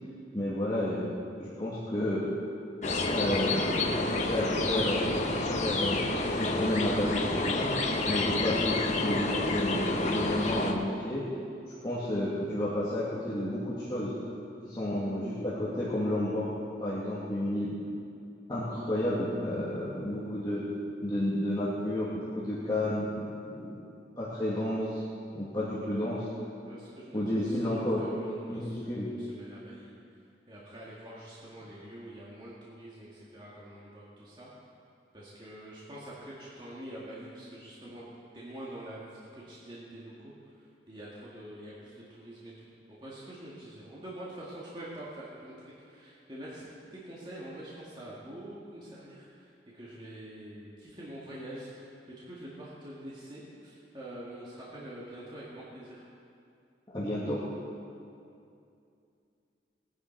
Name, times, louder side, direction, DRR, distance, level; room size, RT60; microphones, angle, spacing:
voice 1, 0.3-1.1 1.4-2.3 3.1-5.0 5.3-6.0 6.4-7.7 8.1-11.2 11.8-14.1 14.6-16.5 16.8-17.7 18.5-20.6 21.0-23.8 24.2-25.0 25.3-26.3 27.1-28.0 28.5-29.1 56.9-57.4, left 1 dB, 25° left, -9 dB, 2.0 m, -31 dB
sound 1, 2.8-10.7, left 2 dB, 40° left, 1.0 m, -29 dB
voice 2, 25.6-26.2 26.7-28.8 29.1-29.9 30.5-34.5 35.1-38.1 38.3-56.0, right 1 dB, 25° right, -7 dB, 1.9 m, -46 dB
19.5 x 9.9 x 4.6 m, 2.5 s
head